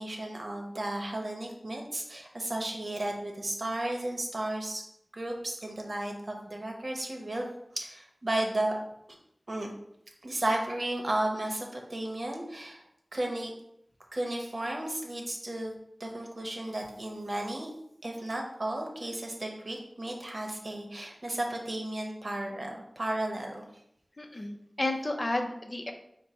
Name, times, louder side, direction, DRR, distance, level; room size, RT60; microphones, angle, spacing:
voice 1, 0.0-4.8 5.1-7.5 7.7-8.7 9.5-9.7 10.2-12.8 13.1-13.5 14.1-15.7 16.0-17.7 18.0-23.6, right 1 dB, 60° right, 1 dB, 0.9 m, -34 dB
voice 2, 24.2-25.9, left 2 dB, 45° left, 4 dB, 0.6 m, -32 dB
5.0 x 2.2 x 4.2 m, 0.76 s
wide cardioid pair, 50°, 0 cm